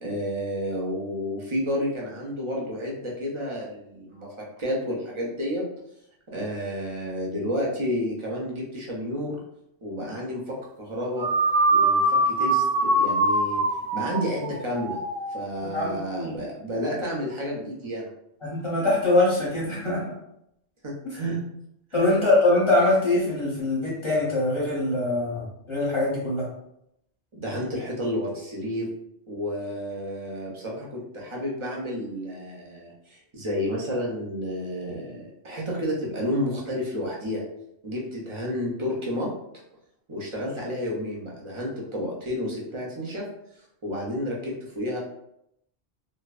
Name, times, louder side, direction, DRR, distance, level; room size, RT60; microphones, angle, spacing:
voice 1, 0.0-4.3 4.6-5.6 6.3-9.4 9.8-11.3 11.7-13.6 13.9-15.0 15.3-18.1 20.8-21.4 21.9-22.2 27.3-28.9 29.3-37.4 37.8-39.3 40.1-43.2 43.8-45.0, equal, 50° right, -3 dB, 0.3 m, -30 dB
sound 1, 11.2-15.7, right 2 dB, 90° right, 0.9 m, -23 dB
voice 2, 15.6-16.3 18.4-20.1 21.0-21.2 21.9-26.5, left 2 dB, 30° left, -7 dB, 0.7 m, -23 dB
2.5 x 2.1 x 2.3 m, 0.79 s
omnidirectional pair, 1.2 m